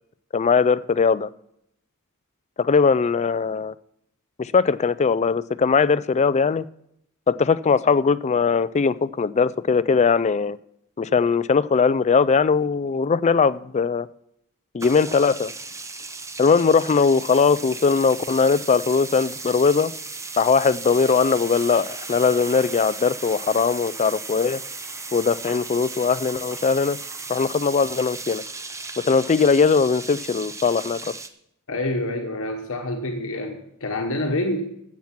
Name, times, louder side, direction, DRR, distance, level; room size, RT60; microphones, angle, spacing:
voice 1, 0.3-1.3 2.6-3.7 4.4-6.6 7.3-10.6 11.0-14.1 14.7-15.5 16.4-19.9 20.4-24.6 25.1-27.0 27.3-28.4 29.0-31.1, left 5 dB, 30° left, 17 dB, 0.4 m, -20 dB
sound 1, 14.8-31.3, right 3 dB, 15° right, 0.8 m, -36 dB
voice 2, 31.7-34.7, left 1 dB, 65° left, 3 dB, 1.2 m, -27 dB
15.0 x 7.2 x 5.9 m, 0.76 s
head